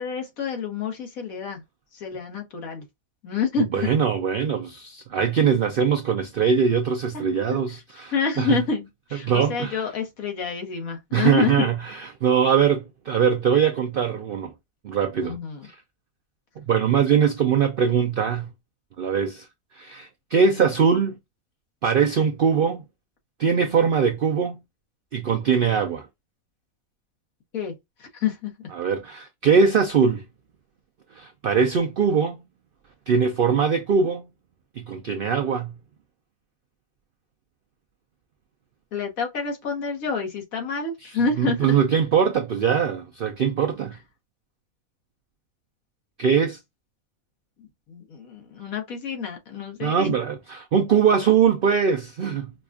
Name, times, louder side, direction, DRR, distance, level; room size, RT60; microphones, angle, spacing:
voice 1, 0.0-1.6 1.9-2.8 3.2-3.9 7.1-7.2 8.1-11.5 15.2-15.7 27.5-27.7 28.0-28.5 38.9-41.8 47.6-50.2, left 5 dB, 70° left, 1.6 m, -28 dB
voice 2, 3.7-8.6 9.2-9.9 11.1-14.5 14.8-15.4 16.7-18.5 19.0-19.5 19.8-21.1 21.8-22.8 23.4-24.6 25.1-26.1 28.7-30.2 31.2-32.4 33.1-34.2 34.8-35.7 41.0-44.0 46.2-46.6 49.8-52.5, right 6 dB, 70° right, 0.5 m, -22 dB
5.0 x 2.3 x 2.4 m
omnidirectional pair, 1.5 m